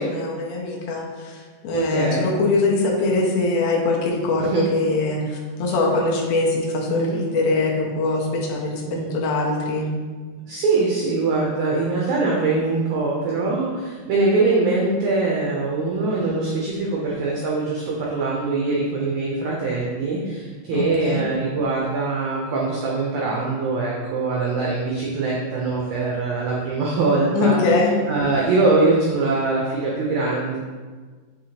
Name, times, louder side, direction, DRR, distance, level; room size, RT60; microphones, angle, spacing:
voice 1, 0.0-9.9 20.7-21.2 27.3-28.0, left 3 dB, 85° left, -1 dB, 2.4 m, -22 dB
voice 2, 1.7-2.3 4.4-4.6 6.9-7.2 8.9-9.1 10.5-27.6 28.1-30.6, right 3 dB, 90° right, -3 dB, 1.6 m, -22 dB
6.5 x 2.8 x 2.8 m, 1.4 s
omnidirectional pair, 4.1 m